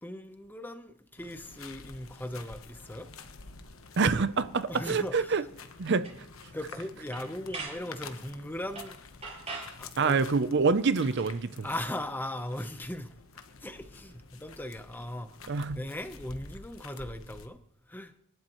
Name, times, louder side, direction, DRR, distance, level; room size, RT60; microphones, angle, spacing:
voice 1, 0.0-3.1 4.7-5.3 6.5-9.0 9.8-10.2 11.6-13.1 13.6-15.3 15.8-17.6 17.9-18.1, left 1 dB, 10° left, 0.9 m, -38 dB
sound 1, 1.2-17.5, left 4 dB, 75° left, 1.1 m, -49 dB
voice 2, 4.0-5.4 5.8-6.1 10.0-11.7 15.5-15.8, right 4 dB, 55° right, 0.6 m, -26 dB
sound 2, 6.0-6.2 6.6-6.8 7.1-7.8 8.7-8.9 9.2-9.8 11.0-11.3, right 3 dB, 30° right, 6.4 m, -41 dB
27.5 x 11.5 x 3.1 m
head